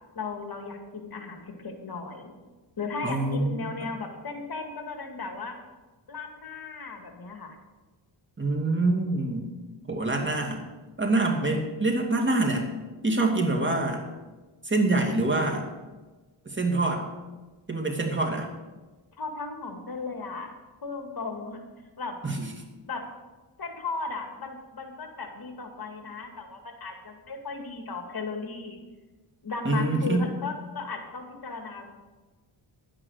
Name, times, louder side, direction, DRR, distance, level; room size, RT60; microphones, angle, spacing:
voice 1, 0.2-2.3 2.8-5.6 6.1-7.6 19.2-20.5 20.8-21.6 22.0-22.2 22.9-23.0 23.6-28.8 29.4-31.9, left 4 dB, 50° left, 4 dB, 2.1 m, -36 dB
voice 2, 3.0-3.9 8.4-9.5 9.8-10.6 11.0-12.7 13.0-14.0 14.6-15.7 16.5-17.0 17.7-18.5 22.2-22.5 29.6-30.2, right 2 dB, 25° right, 1 dB, 2.5 m, -25 dB
11.0 x 9.7 x 6.5 m, 1.2 s
cardioid pair, 85°, 46 cm